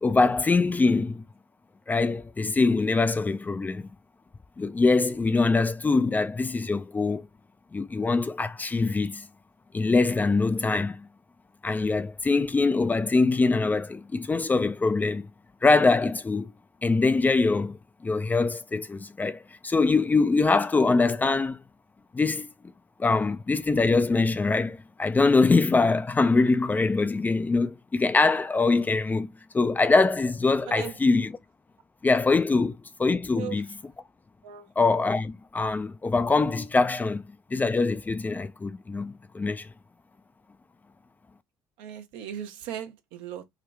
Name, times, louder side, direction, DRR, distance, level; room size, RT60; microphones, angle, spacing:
voice 1, 0.0-1.2 1.9-3.9 4.6-7.3 7.7-9.3 9.7-11.1 11.6-15.3 15.6-16.5 16.8-21.6 22.1-22.5 23.0-31.4 32.0-33.7 34.8-37.2 37.5-39.7, left 3 dB, 20° left, 0.4 m, -23 dB
voice 2, 30.7-31.2 33.3-33.6 34.4-34.7 41.8-43.4, right 10 dB, 65° right, 0.8 m, -38 dB
3.7 x 2.2 x 3.4 m
figure-of-eight pair, 55°, 9 cm